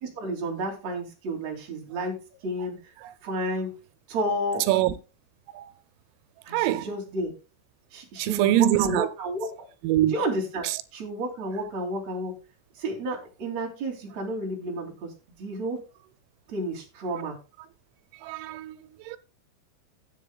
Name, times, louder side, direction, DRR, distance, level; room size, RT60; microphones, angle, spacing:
voice 1, 0.0-2.2 2.4-2.7 3.2-3.7 4.1-4.7 6.4-7.3 7.9-9.7 10.0-10.7 10.9-12.4 12.8-15.1 15.4-15.8 16.5-17.3, right 1 dB, 40° right, 3.3 m, -31 dB
voice 2, 6.5-6.9 8.2-9.1 9.8-10.1 18.2-18.7 19.1-19.2, right 14 dB, 90° right, 3.3 m, -23 dB
17.5 x 7.8 x 2.3 m
omnidirectional pair, 5.7 m